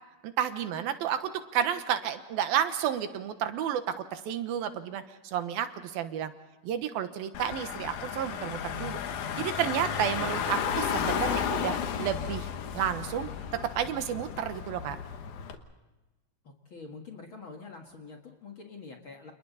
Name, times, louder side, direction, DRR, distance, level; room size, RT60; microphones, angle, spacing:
voice 1, 0.2-6.3 6.6-9.0 9.4-12.5 12.7-13.3 13.8-15.0, right 10 dB, 85° right, 9 dB, 3.1 m, -31 dB
Car / Engine, 7.3-15.5, left 8 dB, 65° left, 2.5 m, -33 dB
voice 2, 16.4-19.3, left 4 dB, 45° left, 2 dB, 1.9 m, -46 dB
30.0 x 28.5 x 4.1 m, 1.1 s
omnidirectional pair, 4.2 m